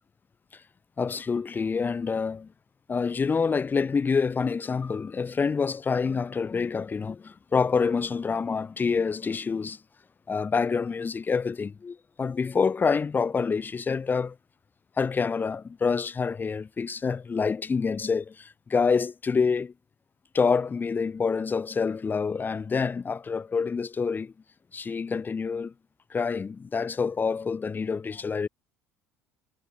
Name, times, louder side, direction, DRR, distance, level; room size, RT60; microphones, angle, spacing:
voice 1, 1.0-2.5 2.9-9.8 10.3-14.3 15.0-19.7 20.3-24.3 24.7-25.7 26.1-28.5, left 5 dB, 25° left, 4.7 m, -27 dB
figure-of-eight pair, 60°, 7 cm